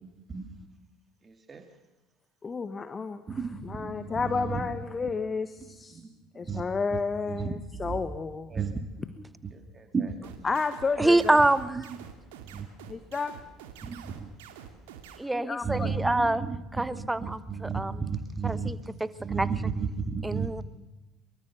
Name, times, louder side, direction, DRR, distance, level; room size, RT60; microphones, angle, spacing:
voice 1, 0.0-0.5 1.3-1.6 3.3-4.7 5.9-6.0 6.5-6.6 7.3-7.5 7.8-7.9 8.5-8.7 9.5-10.3 12.5-12.7 13.8-14.3 15.6-18.7 19.2-20.5, right 5 dB, 25° right, 6 dB, 2.2 m, -33 dB
voice 2, 2.4-6.0 6.3-8.6 10.4-11.4 12.9-13.3 15.3-15.9, left 4 dB, 25° left, 12 dB, 1.2 m, -31 dB
sound 1, 10.2-15.2, right 9 dB, 65° right, 2.4 m, -47 dB
voice 3, 11.0-11.8 15.2-16.4 16.7-18.0 18.4-19.5 20.2-20.6, right 2 dB, 10° right, 16 dB, 1.1 m, -26 dB
23.5 x 22.5 x 6.8 m, 1.1 s
figure-of-eight pair, 60°, 0 cm